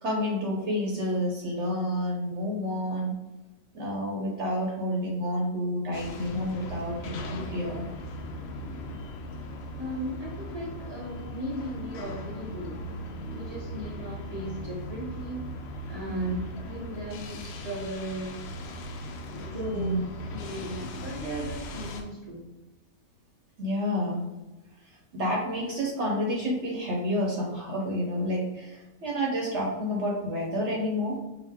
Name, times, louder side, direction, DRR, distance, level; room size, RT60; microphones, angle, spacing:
voice 1, 0.0-3.1 3.7-7.9 16.1-16.4 19.7-20.0 23.6-24.2 24.8-31.2, equal, 60° right, -2 dB, 0.9 m, -29 dB
sound 1, 5.9-22.0, equal, 70° left, 0.6 m, -38 dB
voice 2, 9.8-12.8 13.3-15.5 15.9-18.4 19.5-20.0 20.3-22.5, equal, 20° left, -6 dB, 0.9 m, -37 dB
4.9 x 2.2 x 3.4 m, 1.1 s
omnidirectional pair, 1.6 m